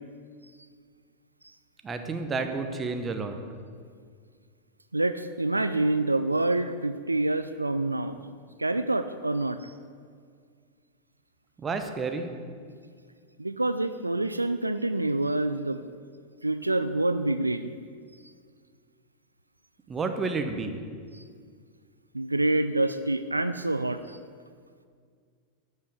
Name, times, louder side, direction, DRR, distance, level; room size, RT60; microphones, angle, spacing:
voice 1, 1.8-3.4 11.6-12.3 19.9-20.8, right 4 dB, 20° right, 6 dB, 1.0 m, -30 dB
voice 2, 4.9-8.2 8.6-9.7 13.4-15.8 16.4-17.7 21.1-21.2 22.1-24.2, right 2 dB, 85° right, 10 dB, 0.4 m, -27 dB
11.5 x 5.6 x 8.0 m, 2.1 s
figure-of-eight pair, 90°, 0 cm